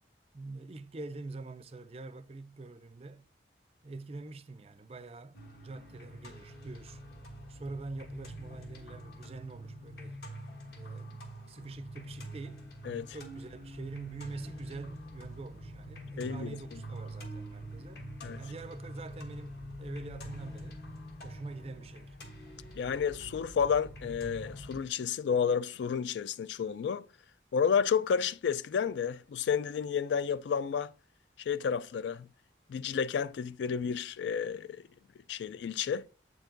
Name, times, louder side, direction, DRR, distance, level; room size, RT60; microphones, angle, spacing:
voice 1, 0.3-3.3 3.8-7.0 7.5-10.2 10.7-12.7 13.1-18.0 18.4-20.9 21.2-22.2, right 3 dB, 35° right, 0.4 m, -44 dB
sound 1, 5.3-24.8, equal, 60° left, 1.3 m, -45 dB
voice 2, 16.2-16.6 18.2-18.4 22.8-27.0 27.5-30.9 31.5-32.3 32.7-34.7 35.3-36.1, left 7 dB, 80° left, 0.3 m, -31 dB
8.0 x 4.6 x 3.8 m
head